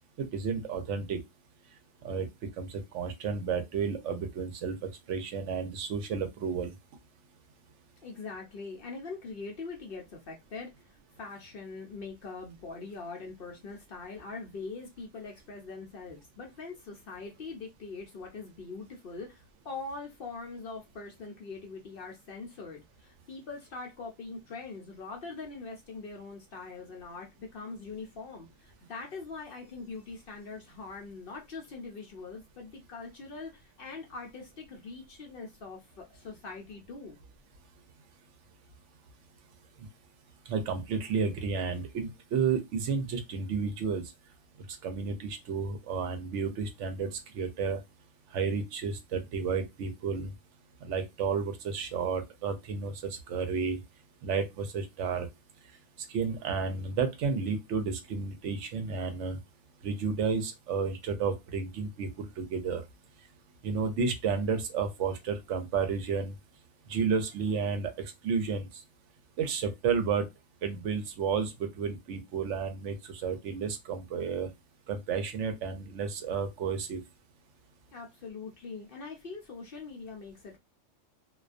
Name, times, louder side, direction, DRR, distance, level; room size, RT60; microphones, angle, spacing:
voice 1, 0.2-1.2 2.0-2.3 2.6-4.7 5.1-6.7 40.5-44.0 44.8-47.8 48.3-50.3 50.8-53.8 54.2-55.3 56.1-59.4 59.8-62.8 63.6-66.3 66.9-68.7 69.4-70.3 70.6-74.5 74.9-77.0, right 5 dB, 75° right, 0.9 m, -31 dB
voice 2, 8.0-10.9 11.2-37.2 77.9-80.6, left 4 dB, 60° left, 0.6 m, -42 dB
2.3 x 2.2 x 2.4 m
omnidirectional pair, 1.3 m